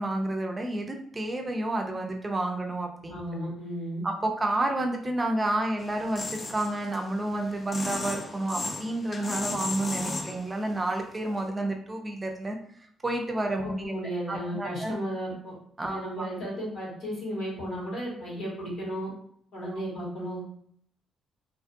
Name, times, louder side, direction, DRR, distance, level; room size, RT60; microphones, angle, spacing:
voice 1, 0.0-3.2 4.0-12.6 13.0-13.9 14.3-14.9 15.8-16.3 19.6-19.7, right 1 dB, 25° right, 2 dB, 0.5 m, -30 dB
voice 2, 3.1-4.0 13.6-15.5 15.8-19.1 19.5-20.5, equal, 70° left, -4 dB, 1.4 m, -34 dB
sound 1, 5.8-10.8 11.2-11.4, left 2 dB, 40° left, 0.4 m, -36 dB
2.5 x 2.4 x 2.5 m, 0.64 s
supercardioid pair, 55°, 0 cm